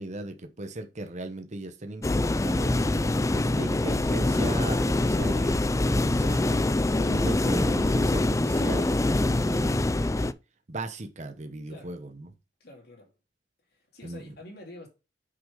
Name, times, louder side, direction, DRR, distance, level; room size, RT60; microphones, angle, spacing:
voice 1, 0.0-5.6 6.0-10.1 10.7-12.3 14.0-14.2, right 1 dB, 45° right, 1.0 m, -37 dB
sound 1, 2.0-10.3, left 2 dB, 20° left, 0.4 m, -24 dB
voice 2, 11.7-12.0 12.6-13.1 13.7-14.9, left 1 dB, 65° left, 3.0 m, -47 dB
6.3 x 6.1 x 5.1 m
head